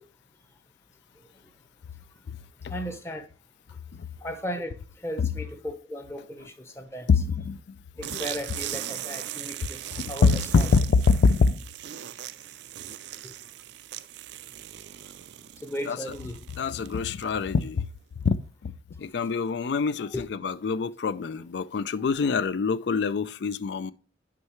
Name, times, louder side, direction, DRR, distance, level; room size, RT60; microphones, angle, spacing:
voice 1, 2.7-3.3 4.2-7.1 8.0-10.7 13.2-13.3 15.6-16.4 20.0-20.3 22.0-22.1, equal, 15° left, 0.7 m, -36 dB
voice 2, 7.1-7.8 10.0-11.6 15.9-16.0 16.6-17.9 18.2-18.7 19.0-23.9, left 5 dB, 65° left, 0.4 m, -24 dB
sound 1, 8.0-17.5, right 12 dB, 65° right, 0.4 m, -39 dB
9.6 x 5.6 x 3.0 m
head